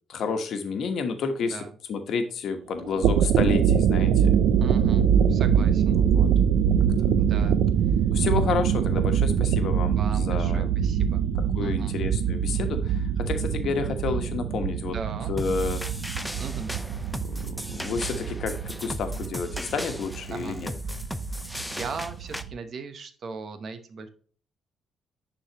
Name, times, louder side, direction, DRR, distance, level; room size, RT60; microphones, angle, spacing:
voice 1, 0.1-1.6 1.9-4.3 6.0-6.3 7.0-7.1 7.4-7.6 8.1-10.7 11.3-15.0 15.3-15.8 17.2-20.7, left 5 dB, 65° left, 7 dB, 1.1 m, -30 dB
voice 2, 1.4-1.7 4.6-6.0 7.2-7.6 9.9-11.2 11.6-12.0 14.8-15.3 16.4-16.7 20.3-20.6 21.5-24.1, right 5 dB, 55° right, 9 dB, 1.0 m, -38 dB
sound 1, 2.8-22.5, right 8 dB, 85° right, 0.5 m, -24 dB
sound 2, 15.4-22.4, equal, 5° left, 0.6 m, -36 dB
10.0 x 4.0 x 3.0 m, 0.43 s
cardioid pair, 90°, 0 cm